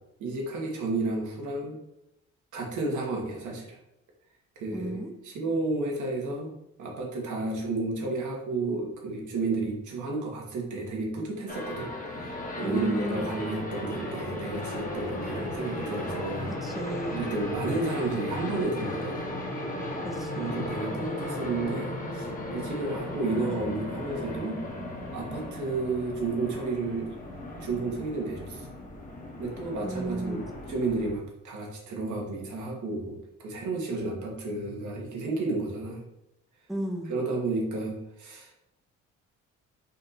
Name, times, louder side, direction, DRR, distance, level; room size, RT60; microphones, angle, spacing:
voice 1, 0.2-1.8 2.5-3.8 4.6-6.5 6.8-11.9 12.2-16.5 17.1-19.3 20.4-24.6 25.1-27.2 27.6-28.7 29.4-30.4 30.7-36.0 37.1-38.5, right 3 dB, 75° right, -1 dB, 1.3 m, -32 dB
voice 2, 4.7-5.1 12.6-13.3 16.6-17.2 20.0-20.6 29.8-30.5 36.7-37.2, right 1 dB, ahead, 1 dB, 0.6 m, -34 dB
sound 1, 11.5-31.1, left 1 dB, 25° left, 1.0 m, -36 dB
4.2 x 2.7 x 4.0 m, 0.86 s
cardioid pair, 90°, 30 cm